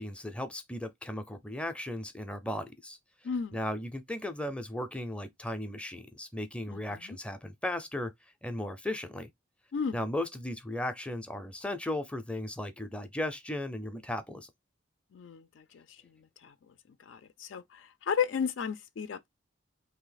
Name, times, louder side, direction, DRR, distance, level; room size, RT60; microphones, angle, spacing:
voice 1, 0.0-3.0 3.5-8.1 8.4-9.3 9.9-14.5, left 1 dB, 5° left, 0.5 m, -36 dB
voice 2, 3.2-3.6 6.7-7.2 9.7-10.0 15.1-16.5 17.0-19.3, left 6 dB, 85° left, 0.4 m, -34 dB
3.1 x 2.8 x 3.9 m
head